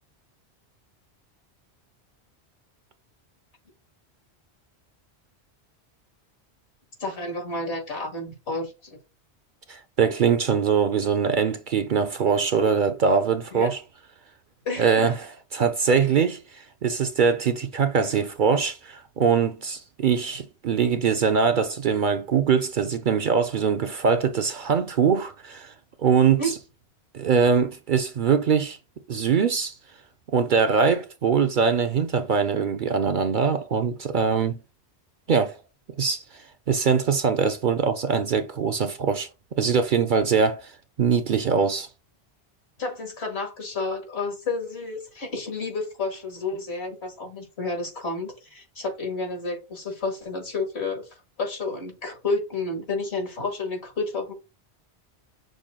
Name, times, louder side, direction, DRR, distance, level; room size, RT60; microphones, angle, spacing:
voice 1, 7.0-9.0 13.5-13.7 14.7-15.1 26.2-26.5 42.8-54.3, left 3 dB, 75° left, 2.1 m, -31 dB
voice 2, 9.7-13.8 14.8-25.7 26.0-26.5 27.1-28.8 29.1-29.8 30.3-34.6 35.3-35.6 36.0-39.3 39.6-40.7 41.0-41.9, right 6 dB, 60° right, 0.6 m, -22 dB
6.3 x 2.2 x 3.6 m
omnidirectional pair, 1.1 m